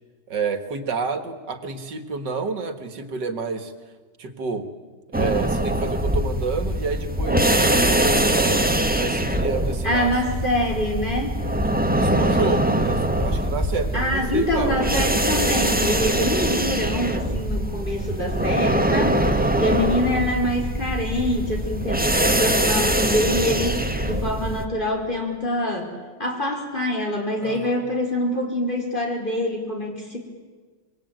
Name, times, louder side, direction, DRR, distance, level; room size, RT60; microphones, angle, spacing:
voice 1, 0.3-3.7 4.2-4.7 5.1-8.6 9.0-10.1 11.7-14.8 27.4-27.9, right 4 dB, 75° right, 9 dB, 2.3 m, -29 dB
sound 1, 5.1-24.6, right 1 dB, 5° right, 1.2 m, -23 dB
voice 2, 9.8-11.3 13.9-25.9 26.2-30.2, left 1 dB, 25° left, 2 dB, 4.5 m, -25 dB
26.0 x 23.0 x 9.2 m, 1.4 s
omnidirectional pair, 1.9 m